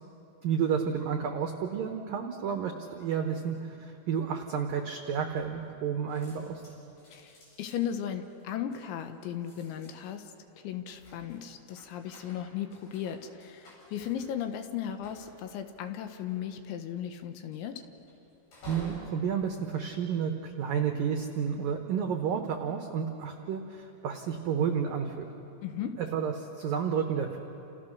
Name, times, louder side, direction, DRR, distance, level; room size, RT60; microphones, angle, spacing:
voice 1, 0.4-6.6 18.7-25.3 25.8-27.4, right 7 dB, 85° right, 4 dB, 2.0 m, -31 dB
sound 1, 5.6-5.8 6.1-20.6 21.2-21.6, equal, 50° left, 9.0 m, -54 dB
voice 2, 7.1-17.9 25.6-26.0, left 9 dB, 75° left, 7 dB, 3.3 m, -36 dB
29.5 x 29.0 x 6.5 m, 2.9 s
omnidirectional pair, 5.9 m